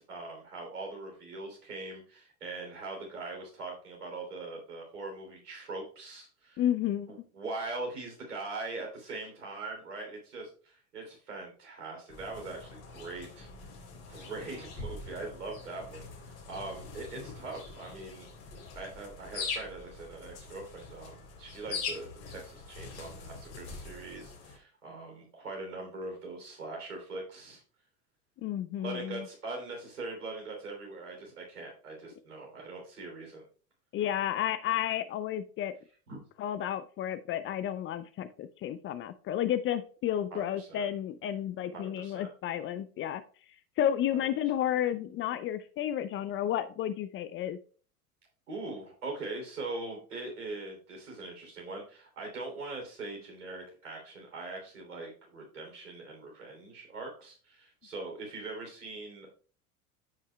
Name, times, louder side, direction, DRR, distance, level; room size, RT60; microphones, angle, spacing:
voice 1, 0.1-6.6 7.1-13.5 14.1-18.3 18.7-27.6 28.8-33.4 36.1-36.2 40.3-40.9 41.7-42.3 48.5-59.3, right 3 dB, 80° right, 1 dB, 3.2 m, -41 dB
voice 2, 6.6-7.1 28.4-29.3 33.9-35.7 36.4-43.2 43.8-47.6, left 11 dB, 30° left, 13 dB, 0.5 m, -32 dB
sound 1, 12.1-24.6, left 4 dB, 60° left, 3.4 m, -43 dB
14.0 x 5.5 x 2.2 m, 0.41 s
figure-of-eight pair, 80°, 45 cm